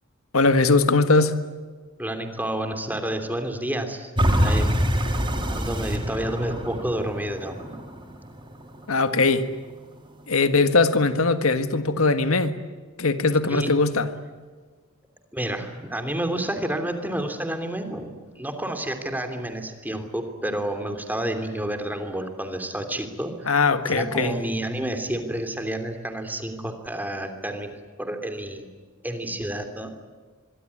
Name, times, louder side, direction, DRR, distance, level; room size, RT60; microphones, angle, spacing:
voice 1, 0.3-1.4 8.9-9.5 10.3-12.6 13.0-14.1 23.5-24.4, left 3 dB, 80° left, 10 dB, 1.6 m, -20 dB
voice 2, 2.0-4.7 5.5-7.8 13.4-13.8 15.3-23.6 23.8-27.7 28.0-28.7 29.0-29.9, right 1 dB, 10° right, 6 dB, 3.0 m, -30 dB
sound 1, 4.2-9.2 9.7-9.8, equal, 25° right, 3.4 m, -25 dB
25.5 x 23.5 x 9.9 m, 1.4 s
head